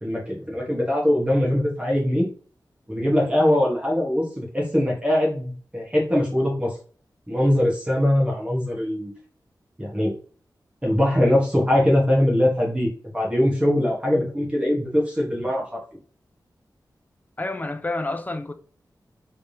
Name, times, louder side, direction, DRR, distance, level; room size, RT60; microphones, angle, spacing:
voice 1, 0.0-2.3 2.9-6.7 7.3-9.1 9.8-10.1 10.8-12.9 13.1-15.8, left 1 dB, 15° right, 1.2 m, -22 dB
voice 2, 17.4-18.5, left 2 dB, 25° left, 0.5 m, -29 dB
3.3 x 3.3 x 2.7 m
wide cardioid pair, 95°, 7 cm